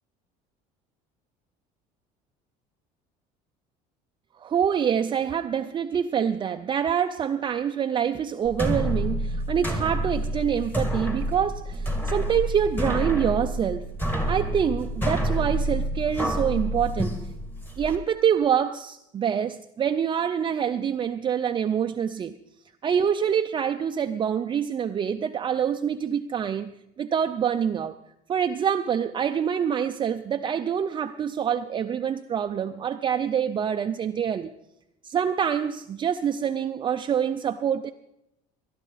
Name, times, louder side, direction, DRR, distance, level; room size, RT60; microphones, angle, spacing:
voice 1, 4.4-13.9 14.3-17.1 17.8-22.4 22.8-28.0 28.3-34.5 35.0-37.9, right 8 dB, 30° right, 0.4 m, -26 dB
sound 1, 8.5-18.0, right 1 dB, 10° left, 1.9 m, -28 dB
19.5 x 11.0 x 4.0 m
cardioid pair, 115°, 17 cm